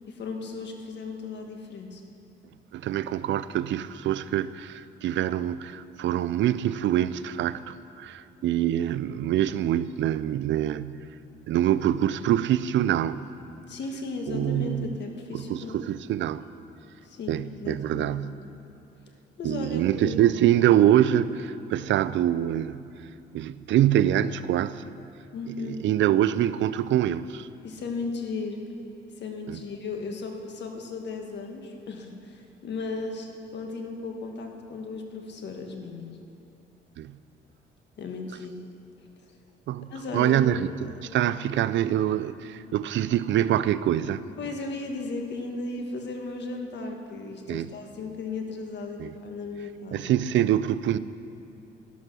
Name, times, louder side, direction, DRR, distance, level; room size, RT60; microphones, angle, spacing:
voice 1, 0.1-2.0 13.7-15.8 17.0-18.1 19.4-20.2 25.3-25.9 27.6-28.6 29.2-36.2 38.0-38.6 39.2-39.4 39.9-40.6 44.4-50.1, left 3 dB, 60° left, 3 dB, 1.6 m, -35 dB
voice 2, 2.7-11.0 11.5-13.2 14.3-15.0 15.3-16.4 17.3-18.4 19.4-22.8 23.3-24.8 25.6-27.5 29.5-29.6 37.0-37.1 39.7-44.2 47.5-47.7 49.0-49.1 49.9-51.0, right 11 dB, 70° right, 15 dB, 0.5 m, -25 dB
12.0 x 11.5 x 6.1 m, 2.7 s
cardioid pair, 90°, 20 cm